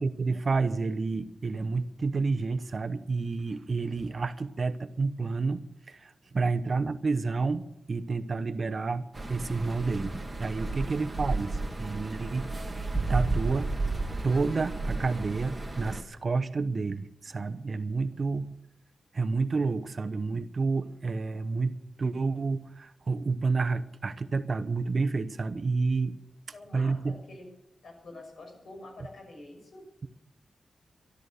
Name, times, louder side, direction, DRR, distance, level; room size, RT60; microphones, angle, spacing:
voice 1, 0.0-13.7 14.2-18.5 19.1-26.2 26.7-27.2, right 4 dB, 45° right, 9 dB, 0.8 m, -30 dB
voice 2, 6.2-6.6 18.1-18.4 26.5-27.5 27.8-29.9, left 2 dB, 70° left, 2 dB, 6.2 m, -48 dB
sound 1, 9.1-16.0, right 3 dB, 15° right, 2.3 m, -33 dB
13.0 x 12.5 x 6.6 m, 0.83 s
wide cardioid pair, 115°, 0 cm